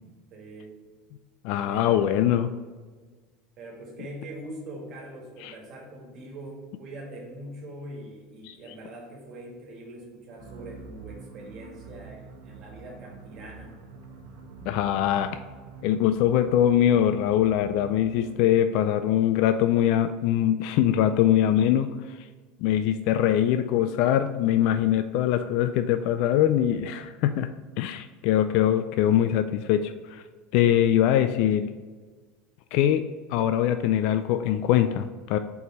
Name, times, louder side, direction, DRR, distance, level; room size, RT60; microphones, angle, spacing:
voice 1, 0.3-0.8 1.7-2.2 3.6-13.7, right 1 dB, 45° right, 0 dB, 1.8 m, -42 dB
voice 2, 1.4-2.5 5.4-5.5 8.4-8.6 14.7-15.3 15.8-22.2 22.6-27.5 27.8-30.2 30.5-31.7 32.7-33.0 33.3-35.4, left 11 dB, 65° left, 9 dB, 0.3 m, -23 dB
sound 1, 10.3-18.6, right 5 dB, 85° right, 1.2 m, -46 dB
4.6 x 4.1 x 5.0 m, 1.4 s
supercardioid pair, 120°, 0 cm